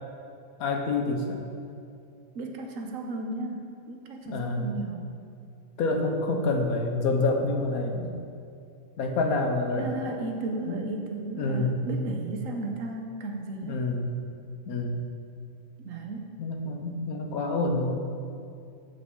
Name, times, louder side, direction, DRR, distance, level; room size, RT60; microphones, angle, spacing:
voice 1, 0.6-1.4 4.2-4.7 5.8-8.1 9.0-9.9 10.7-10.9 11.3-12.2 13.6-14.1 14.7-15.0 16.4-18.1, left 2 dB, 85° left, 4 dB, 1.3 m, -27 dB
voice 2, 2.3-5.1 9.7-13.8 15.8-16.3, right 3 dB, 70° right, 3 dB, 1.2 m, -35 dB
12.5 x 5.5 x 3.7 m, 2.4 s
omnidirectional pair, 1.5 m